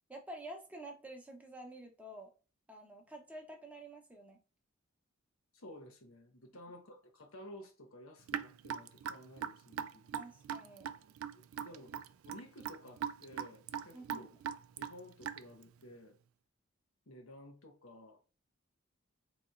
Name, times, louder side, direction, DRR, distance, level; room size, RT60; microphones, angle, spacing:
voice 1, 0.1-2.3 2.7-4.4 10.1-10.9 13.9-14.2, right 1 dB, 5° right, 0.8 m, -49 dB
voice 2, 5.5-10.2 11.3-12.0 12.2-14.3 14.8-16.2 17.1-18.4, left 1 dB, 80° left, 0.9 m, -54 dB
Raindrop / Drip, 8.3-15.6, right 8 dB, 80° right, 0.3 m, -40 dB
4.2 x 3.0 x 2.5 m
head